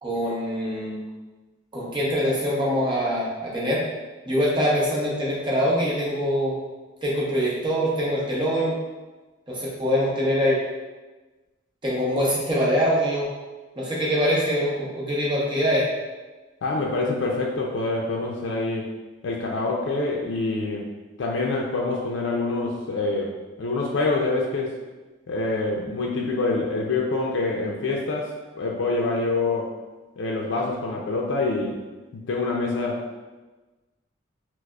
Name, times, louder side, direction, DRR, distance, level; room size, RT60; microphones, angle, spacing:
voice 1, 0.0-1.0 1.7-3.8 4.3-6.6 7.0-8.7 9.5-10.6 11.8-13.3 13.8-15.8, equal, 25° right, -5 dB, 0.7 m, -24 dB
voice 2, 16.6-18.9 19.2-20.9 21.2-24.8 25.3-29.7 30.2-31.8 32.1-33.2, left 3 dB, 70° left, -1 dB, 0.4 m, -26 dB
4.6 x 2.0 x 2.3 m, 1.2 s
head